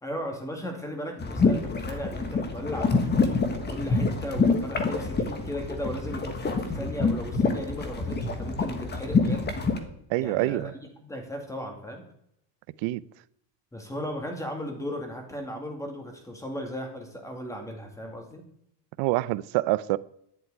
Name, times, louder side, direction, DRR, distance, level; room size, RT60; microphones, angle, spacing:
voice 1, 0.0-9.5 10.2-12.1 13.7-18.5, equal, 5° left, 2.3 m, -36 dB
sound 1, 1.2-9.8, left 4 dB, 20° left, 1.4 m, -26 dB
voice 2, 10.1-10.7 12.8-13.0 19.0-20.0, right 18 dB, 80° right, 0.7 m, -26 dB
11.0 x 7.9 x 9.6 m
cardioid pair, 180°, 45 cm